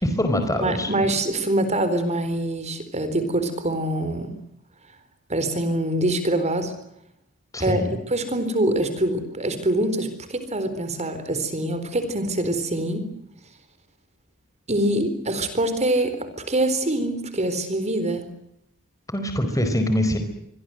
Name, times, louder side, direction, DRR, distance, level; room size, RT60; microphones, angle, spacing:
voice 1, 0.0-0.9 7.5-7.9 19.1-20.2, left 1 dB, 15° left, 7 dB, 4.6 m, -23 dB
voice 2, 0.5-4.3 5.3-6.7 7.6-13.1 14.7-18.3, right 1 dB, 30° right, 10 dB, 4.0 m, -24 dB
26.0 x 23.5 x 7.9 m, 0.77 s
head